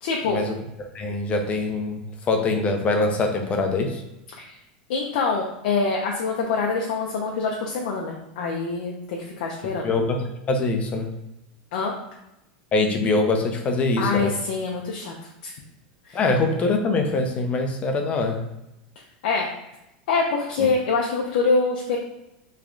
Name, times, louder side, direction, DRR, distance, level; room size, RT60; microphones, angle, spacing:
voice 1, 0.0-0.4 4.4-4.5 4.9-9.9 11.7-11.9 14.0-15.1 15.4-15.5 16.1-16.2 19.2-19.5 20.1-22.0, left 4 dB, 70° left, 0 dB, 0.6 m, -25 dB
voice 2, 0.9-2.0 2.3-4.0 9.8-11.1 12.7-14.3 16.1-18.4, left 3 dB, 25° left, 4 dB, 0.6 m, -23 dB
3.1 x 2.3 x 3.7 m, 0.89 s
supercardioid pair, 135°, 5 cm